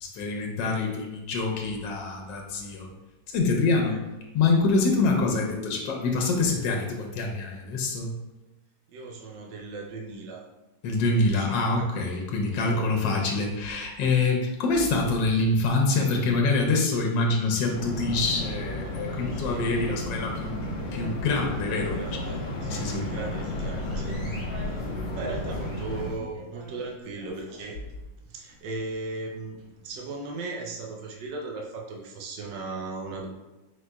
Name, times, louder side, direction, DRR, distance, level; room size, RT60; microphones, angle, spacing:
voice 1, 0.0-2.9 3.3-4.0 4.3-8.1 10.8-20.6 20.9-22.2 22.7-23.0 24.1-24.4, left 3 dB, 75° left, 0 dB, 1.3 m, -25 dB
voice 2, 8.9-10.5 11.1-11.8 12.7-12.9 19.3-19.7 21.9-24.2 24.6-24.9 25.1-27.8 28.3-29.6 29.8-33.3, right 3 dB, 70° right, -1 dB, 1.3 m, -37 dB
sound 1, 17.7-26.1, left 1 dB, 60° left, 1.3 m, -32 dB
sound 2, 23.9-30.0, left 1 dB, 45° right, 2.0 m, -47 dB
4.9 x 3.9 x 2.3 m, 1.1 s
omnidirectional pair, 2.0 m